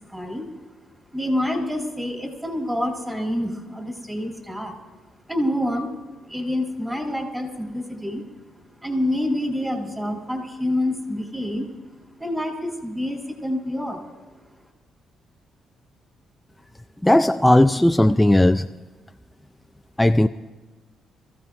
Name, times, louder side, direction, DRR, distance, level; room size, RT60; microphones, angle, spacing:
voice 1, 0.1-0.5 1.1-4.8 5.3-5.9 6.3-8.2 8.8-11.7 12.2-14.0, left 1 dB, 10° right, 4.1 m, -27 dB
voice 2, 17.0-18.7 20.0-20.3, left 1 dB, 5° left, 0.4 m, -16 dB
27.5 x 15.5 x 2.6 m
cardioid pair, 90°, 0 cm